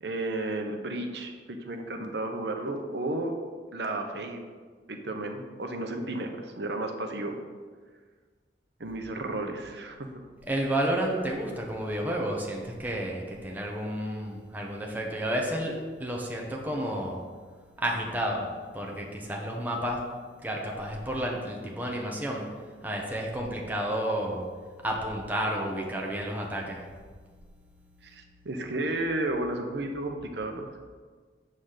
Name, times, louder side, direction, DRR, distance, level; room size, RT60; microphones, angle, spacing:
voice 1, 0.0-3.3 3.7-4.4 4.9-7.4 8.8-10.0 28.0-30.8, right 2 dB, 70° right, 4 dB, 0.9 m, -33 dB
voice 2, 10.4-17.2 17.8-20.1 20.4-22.5 22.8-24.5 24.8-26.9, right 1 dB, 10° right, -1 dB, 1.0 m, -31 dB
7.5 x 4.0 x 6.6 m, 1.5 s
head